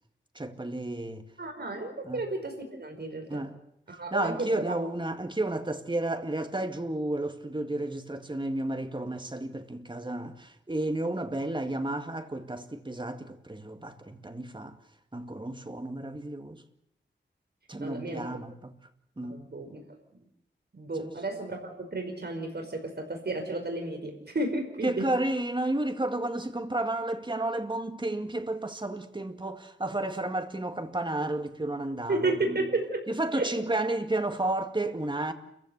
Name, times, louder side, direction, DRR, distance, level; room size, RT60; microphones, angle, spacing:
voice 1, 0.4-1.3 2.0-2.2 3.3-3.5 4.1-14.8 15.1-16.6 17.7-18.8 19.2-19.4 21.0-21.1 24.8-32.6 33.1-35.3, right 2 dB, 25° right, 2.1 m, -32 dB
voice 2, 1.4-3.4 3.9-4.8 17.8-18.3 19.2-19.8 20.7-25.0 32.1-33.0 33.4-33.5, right 2 dB, 60° right, 5.4 m, -32 dB
29.0 x 15.5 x 8.2 m
wide cardioid pair, 85°, 19 cm